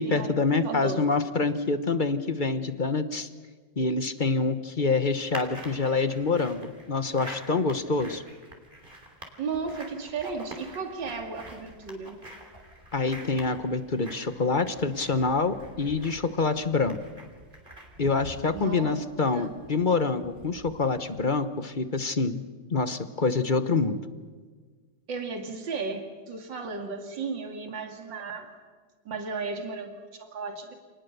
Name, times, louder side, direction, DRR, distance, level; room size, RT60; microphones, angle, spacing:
voice 1, 0.0-3.3 3.8-8.2 12.9-17.0 18.0-22.4 22.7-24.0, left 4 dB, 35° left, 11 dB, 1.0 m, -26 dB
voice 2, 0.6-1.0 9.4-12.2 18.5-18.9 19.3-19.5 25.1-28.5 29.0-30.8, right 4 dB, 75° right, 5 dB, 3.1 m, -34 dB
sound 1, 5.3-21.3, right 1 dB, 25° right, 3.6 m, -46 dB
28.5 x 19.5 x 6.8 m, 1.5 s
omnidirectional pair, 2.0 m